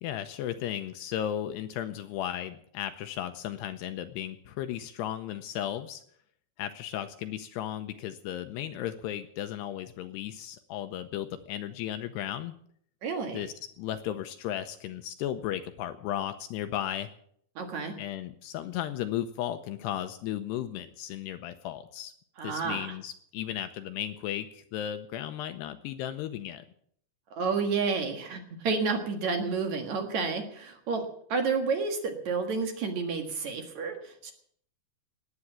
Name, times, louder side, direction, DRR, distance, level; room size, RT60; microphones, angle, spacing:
voice 1, 0.0-6.0 6.6-12.5 13.3-17.1 18.0-22.1 22.4-26.6, left 11 dB, 80° left, 9 dB, 2.6 m, -35 dB
voice 2, 13.0-13.4 17.6-17.9 22.4-22.9 27.3-31.0 31.3-34.3, right 4 dB, 55° right, 5 dB, 2.1 m, -30 dB
18.0 x 9.7 x 7.4 m, 0.66 s
omnidirectional pair, 5.2 m